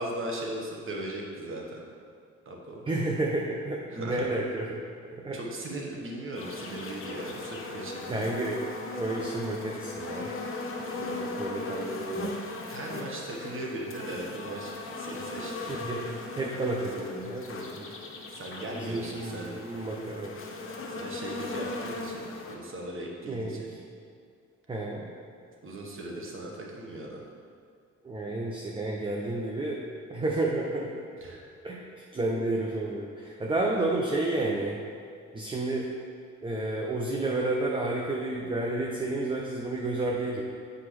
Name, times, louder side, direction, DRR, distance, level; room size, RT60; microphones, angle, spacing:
voice 1, 0.0-1.8 2.5-2.8 3.9-4.2 5.3-8.4 12.7-15.7 18.3-19.7 20.9-23.8 25.6-27.2 31.2-31.4, right 1 dB, 45° right, -1 dB, 1.2 m, -38 dB
voice 2, 2.9-4.8 5.1-5.4 6.4-6.5 8.1-8.6 9.0-10.3 10.9-12.4 15.7-17.8 18.7-20.4 23.2-23.8 24.7-25.1 28.0-30.9 31.6-31.8 32.1-34.8 35.3-35.9 36.4-40.4, right 2 dB, 15° right, -2 dB, 0.7 m, -31 dB
sound 1, 6.3-22.6, left 3 dB, 45° left, 0.9 m, -38 dB
8.1 x 4.8 x 3.2 m, 2.2 s
cardioid pair, 90°, 30 cm